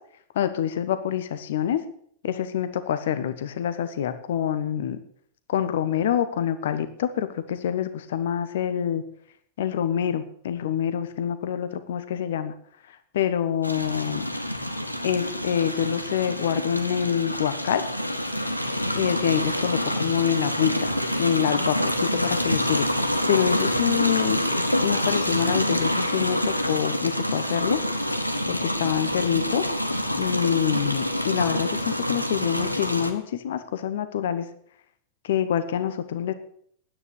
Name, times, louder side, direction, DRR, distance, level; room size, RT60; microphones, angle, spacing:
voice 1, 0.3-1.8 2.2-5.0 5.5-9.0 9.6-12.5 12.9-14.2 15.0-17.8 18.9-24.4 24.8-27.8 28.5-29.6 30.2-34.5 35.2-36.3, left 9 dB, 60° left, 12 dB, 1.2 m, -26 dB
sound 1, 13.6-33.1, equal, 90° left, 1.1 m, -27 dB
9.7 x 9.6 x 8.3 m, 0.63 s
figure-of-eight pair, 90°, 0 cm